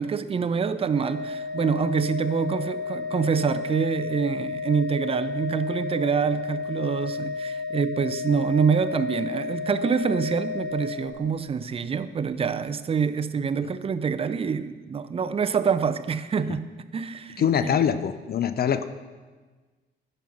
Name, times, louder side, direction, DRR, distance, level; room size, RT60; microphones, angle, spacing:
voice 1, 0.0-16.7 16.9-17.8, right 6 dB, 30° right, 12 dB, 0.5 m, -26 dB
Organ, 0.9-11.6, left 4 dB, 55° right, 2.2 m, -32 dB
voice 2, 17.4-18.8, left 8 dB, 50° left, 11 dB, 0.6 m, -23 dB
11.0 x 5.4 x 5.9 m, 1.3 s
cardioid pair, 90°, 20 cm